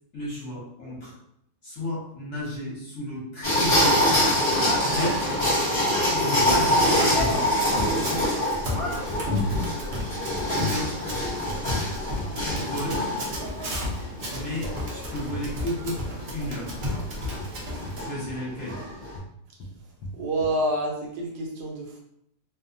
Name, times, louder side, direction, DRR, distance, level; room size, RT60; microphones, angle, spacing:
voice 1, 0.1-1.1 1.6-4.0 4.8-5.6 6.1-7.5 7.8-8.3 10.5-11.0 12.4-13.1 14.3-16.1 16.3-16.8 18.0-18.8, left 1 dB, 50° left, -7 dB, 1.1 m, -33 dB
sound 1, 3.4-19.2, left 1 dB, 25° left, 0.7 m, -25 dB
sound 2, 3.9-4.4 4.7-5.1 6.4-7.4 8.6-9.6 9.9-12.9 13.9-14.1 14.6-14.9 15.3-15.5 16.0-16.2 17.0-18.4 18.7-20.6, equal, 75° left, 1.1 m, -40 dB
Run, 6.4-18.0, left 1 dB, 60° right, 0.9 m, -32 dB
voice 2, 20.1-22.0, right 1 dB, 75° right, -1 dB, 1.2 m, -28 dB
3.0 x 2.0 x 2.5 m, 0.75 s
omnidirectional pair, 1.8 m